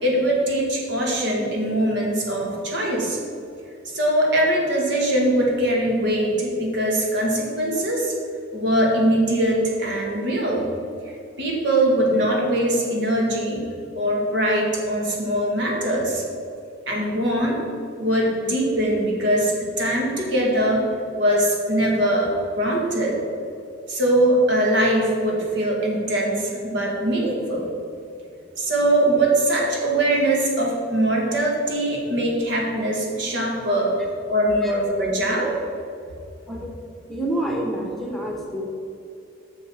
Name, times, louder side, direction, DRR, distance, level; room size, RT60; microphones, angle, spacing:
voice 1, 0.0-3.2 3.9-8.1 8.5-10.7 11.0-13.7 14.0-16.2 16.9-17.6 18.0-20.8 21.1-23.2 23.9-27.7 28.6-33.9 34.3-35.6, right 1 dB, 70° right, -1 dB, 1.9 m, -22 dB
voice 2, 37.1-38.6, right 1 dB, ahead, -1 dB, 1.1 m, -28 dB
7.5 x 6.5 x 6.2 m, 2.6 s
head